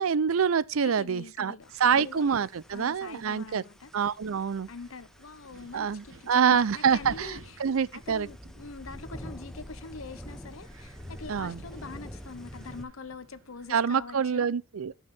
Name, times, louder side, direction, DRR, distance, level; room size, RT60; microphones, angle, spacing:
voice 1, 0.0-1.5 1.8-3.6 3.9-4.7 5.7-8.3 11.3-11.6 13.7-14.9, right 6 dB, 90° right, 0.5 m, -26 dB
voice 2, 0.8-2.4 2.7-4.1 4.7-7.6 7.9-14.5, left 4 dB, 85° left, 1.0 m, -44 dB
sound 1, 1.6-12.8, equal, 5° left, 0.9 m, -47 dB
Wind, 4.9-14.4, right 1 dB, 70° right, 2.2 m, -54 dB
11.5 x 5.8 x 4.3 m
head